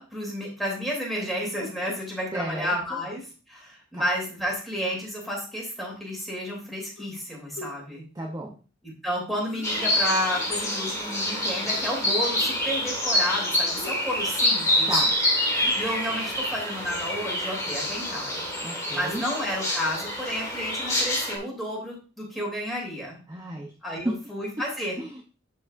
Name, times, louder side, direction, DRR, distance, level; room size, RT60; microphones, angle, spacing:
voice 1, 0.0-3.2 3.5-8.0 8.8-14.9 15.7-18.4 18.9-23.2 23.8-25.0, equal, ahead, -3 dB, 2.9 m, -31 dB
voice 2, 2.3-3.0 3.9-4.1 8.1-8.6 14.9-15.1 18.6-19.2 23.3-23.7 24.0-24.1 25.0-25.2, right 1 dB, 20° right, 1 dB, 0.7 m, -32 dB
sound 1, 7.0-7.2 7.5-7.8 9.4-10.1 11.7-12.0 12.4-12.9 13.7-14.5 15.5-16.0, left 2 dB, 85° left, 1.2 m, -44 dB
sound 2, 9.6-21.4, left 1 dB, 15° left, 1.5 m, -26 dB
11.0 x 4.8 x 2.5 m, 0.36 s
head